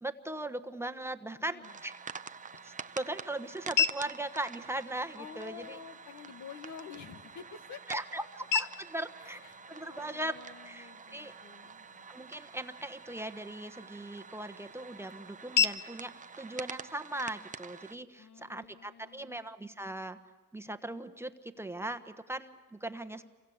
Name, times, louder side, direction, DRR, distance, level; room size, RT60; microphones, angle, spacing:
voice 1, 0.0-1.9 2.6-5.8 7.9-8.2 8.5-9.4 9.7-10.4 10.6-11.3 12.1-16.1 16.4-20.2 20.5-23.2, right 1 dB, 10° right, 7 dB, 1.2 m, -39 dB
voice 2, 1.5-1.8 5.2-8.3 9.2-11.9 18.2-19.5, left 7 dB, 70° left, 9 dB, 1.6 m, -49 dB
sound 1, 1.6-18.0, right 5 dB, 25° right, 0.7 m, -48 dB
sound 2, 2.0-18.0, left 7 dB, 85° left, 1.0 m, -38 dB
29.0 x 24.5 x 7.3 m, 1.3 s
cardioid pair, 90°, 30 cm